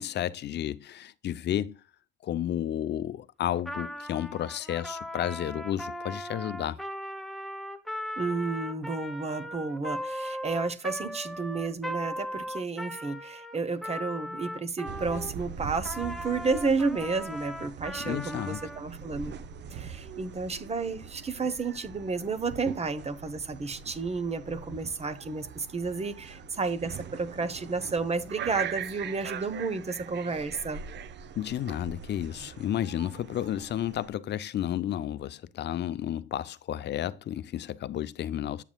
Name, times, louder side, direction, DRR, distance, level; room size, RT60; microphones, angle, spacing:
voice 1, 0.0-1.8 2.2-6.8 18.0-18.6 31.4-38.6, left 11 dB, 60° left, 0.6 m, -32 dB
Trumpet, 3.6-15.3 15.8-18.8, equal, ahead, 0.9 m, -38 dB
voice 2, 8.2-19.3 19.7-30.8, right 4 dB, 30° right, 1.0 m, -31 dB
sound 1, 14.9-34.1, right 8 dB, 60° right, 0.7 m, -42 dB
9.0 x 7.1 x 2.3 m
cardioid pair, 90°, 20 cm